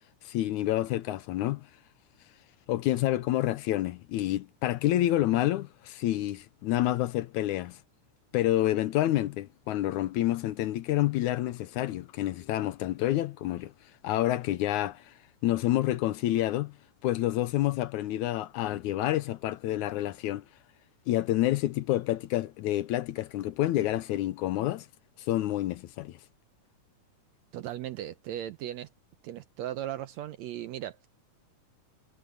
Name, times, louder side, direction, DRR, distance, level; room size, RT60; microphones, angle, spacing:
voice 1, 0.3-1.7 2.7-7.8 8.3-13.7 14.0-15.1 15.4-16.7 17.0-20.4 21.1-24.9 25.3-26.2, left 14 dB, 75° left, 2.0 m, -28 dB
voice 2, 27.5-28.9 29.2-31.1, right 12 dB, 75° right, 1.7 m, -37 dB
omnidirectional pair, 3.7 m